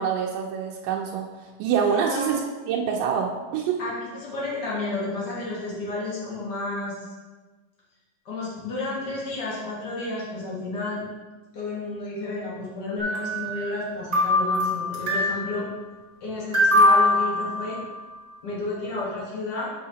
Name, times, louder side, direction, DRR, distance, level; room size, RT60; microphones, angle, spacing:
voice 1, 0.0-2.4 2.7-3.8, right 7 dB, 80° right, -1 dB, 2.2 m, -26 dB
voice 2, 1.9-2.3 3.8-7.0 8.2-11.0 11.5-15.6 16.2-17.8 18.4-19.7, left 2 dB, 75° left, -6 dB, 0.9 m, -31 dB
sound 1, 13.0-13.8 14.1-15.5 16.5-18.1, left 1 dB, 40° right, 0.9 m, -22 dB
7.3 x 6.3 x 2.8 m, 1.3 s
omnidirectional pair, 4.1 m